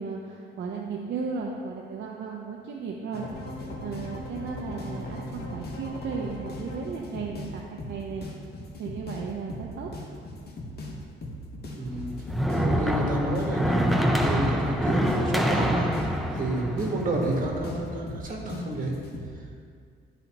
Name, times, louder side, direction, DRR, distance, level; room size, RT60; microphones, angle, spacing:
voice 1, 0.0-3.5 3.8-8.3 8.8-9.9, right 5 dB, 65° right, -1 dB, 0.7 m, -35 dB
sound 1, 3.1-19.3, left 1 dB, 55° left, 1.2 m, -38 dB
voice 2, 4.7-5.3 11.7-12.1 12.5-15.9 16.3-18.9, right 1 dB, 45° right, 0 dB, 1.4 m, -30 dB
sound 2, 11.9-18.0, equal, ahead, 0.6 m, -26 dB
11.5 x 4.0 x 2.9 m, 2.2 s
cardioid pair, 90°, 20 cm